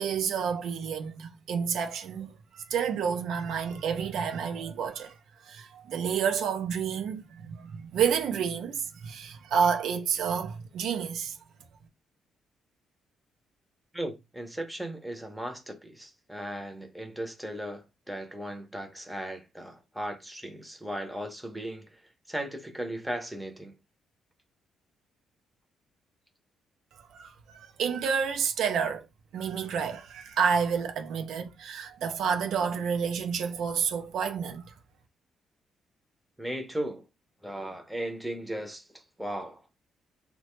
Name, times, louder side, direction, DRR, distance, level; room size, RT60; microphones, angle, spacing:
voice 1, 0.0-2.3 2.7-5.1 5.5-11.4 27.1-29.1 29.3-34.7, right 7 dB, 75° right, 0.5 m, -29 dB
voice 2, 13.9-22.0 22.3-23.8 36.4-37.0 37.4-38.9 39.2-39.6, right 1 dB, 5° right, 0.7 m, -37 dB
2.8 x 2.2 x 3.0 m
cardioid pair, 90°, 0 cm